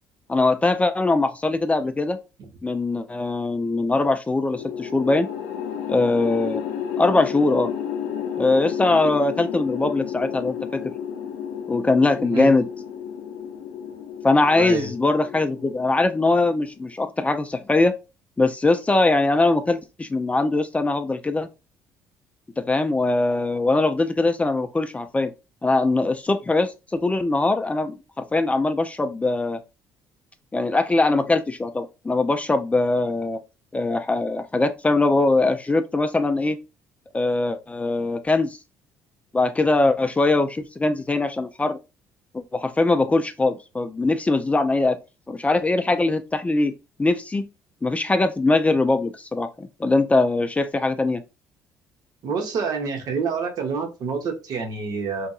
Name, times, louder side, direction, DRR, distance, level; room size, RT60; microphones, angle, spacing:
voice 1, 0.3-2.2 2.6-5.3 5.9-6.6 7.0-7.7 8.4-10.8 11.7-12.7 14.2-17.9 18.4-21.5 22.6-25.3 25.6-29.6 30.5-33.4 33.7-36.6 37.1-38.6 39.3-41.8 42.3-45.0 45.3-46.7 47.0-47.4 47.8-51.2, left 2 dB, 20° left, 0.3 m, -21 dB
sound 1, 4.5-16.9, left 8 dB, 80° left, 0.4 m, -32 dB
voice 2, 12.2-12.5 14.5-14.9 52.2-55.3, right 5 dB, 60° right, 0.8 m, -27 dB
2.8 x 2.6 x 2.3 m
hypercardioid pair, 65°, 7 cm